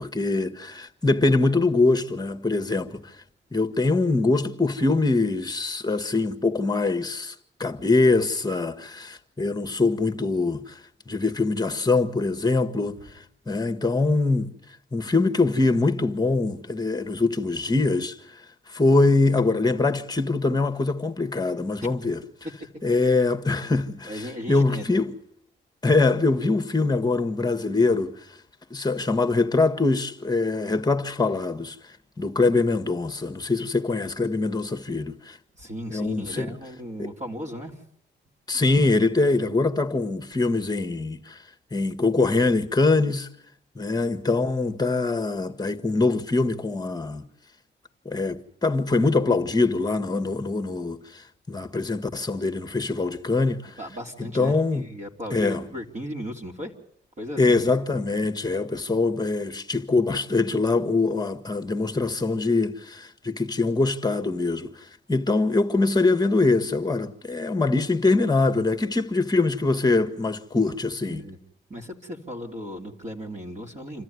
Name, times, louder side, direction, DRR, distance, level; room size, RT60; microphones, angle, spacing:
voice 1, 0.0-3.1 3.5-10.8 11.1-14.5 14.9-18.4 18.7-22.2 22.8-25.1 25.8-28.3 28.7-31.8 32.2-35.4 35.9-36.6 38.5-41.4 41.7-43.3 43.7-47.3 48.0-53.8 54.3-54.8 55.3-55.6 57.4-71.2, left 3 dB, 20° left, 1.7 m, -23 dB
voice 2, 24.1-24.9 35.6-37.8 53.8-56.7 57.2-57.6 71.0-71.4 71.7-74.0, equal, 35° right, 3.3 m, -36 dB
27.0 x 14.0 x 9.7 m
cardioid pair, 70°, 20 cm